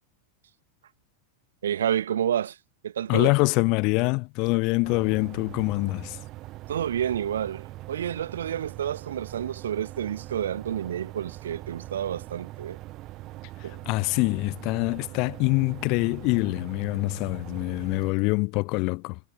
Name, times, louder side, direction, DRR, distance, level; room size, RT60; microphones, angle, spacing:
voice 1, 1.6-2.6 2.8-3.3 6.7-12.8 13.6-13.8, right 10 dB, 65° right, 1.7 m, -29 dB
voice 2, 3.1-6.2 13.9-19.2, left 28 dB, 45° left, 0.8 m, -25 dB
sound 1, 4.8-18.1, right 17 dB, 35° right, 0.8 m, -42 dB
figure-of-eight pair, 90°, 0 cm